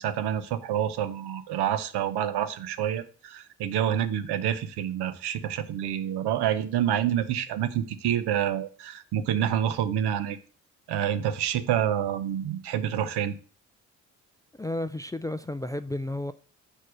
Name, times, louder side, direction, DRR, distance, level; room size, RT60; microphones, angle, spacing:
voice 1, 0.0-10.4 10.9-13.4, right 10 dB, 70° right, 0.7 m, -28 dB
voice 2, 14.6-16.3, left 1 dB, 10° left, 0.3 m, -32 dB
4.9 x 4.5 x 6.1 m
hypercardioid pair, 40°, 42 cm